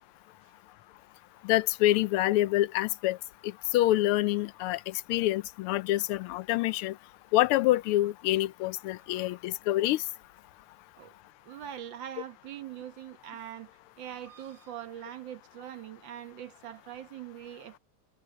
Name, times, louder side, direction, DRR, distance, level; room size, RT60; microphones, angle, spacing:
voice 1, 1.4-3.2 3.4-6.9 7.3-10.0, left 15 dB, 80° left, 1.5 m, -26 dB
voice 2, 9.0-9.4 11.0-11.1 11.4-13.7 14.0-17.8, right 11 dB, 60° right, 1.8 m, -43 dB
omnidirectional pair, 2.4 m